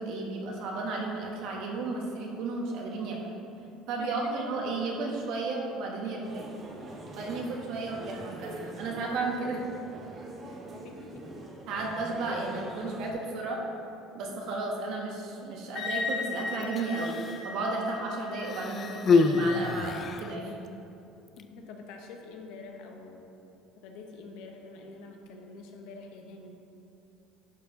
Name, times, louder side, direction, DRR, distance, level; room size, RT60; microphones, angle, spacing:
voice 1, 0.0-3.2 3.9-6.5 7.1-9.6 11.7-13.6 14.1-20.5, right 3 dB, 60° right, -1 dB, 1.4 m, -33 dB
voice 2, 4.0-4.3 10.4-11.5 21.4-23.3 23.8-26.5, left 3 dB, 75° left, 3 dB, 1.0 m, -46 dB
sound 1, 6.2-13.1, right 2 dB, 25° right, 0.9 m, -43 dB
Wind instrument woodwind instrument, 15.7-19.6, left 4 dB, 45° left, 1.4 m, -37 dB
Human voice, 16.6-17.5 18.4-20.4 21.3-21.4, left 4 dB, 30° left, 0.3 m, -27 dB
11.5 x 4.8 x 3.8 m, 2.7 s
cardioid pair, 160°, 0 cm